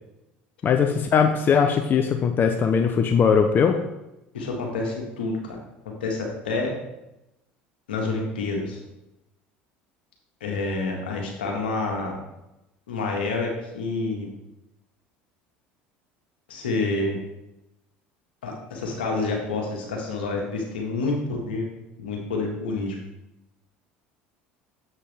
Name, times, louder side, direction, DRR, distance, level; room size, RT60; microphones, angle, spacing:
voice 1, 0.6-3.8, left 6 dB, 40° left, 6 dB, 0.7 m, -20 dB
voice 2, 4.3-5.6 6.0-6.7 7.9-8.8 10.4-12.1 12.9-14.3 16.5-17.2 18.4-21.6 22.0-23.0, left 3 dB, 85° left, 0 dB, 1.7 m, -28 dB
7.4 x 6.7 x 3.5 m, 0.91 s
hypercardioid pair, 70°, 5 cm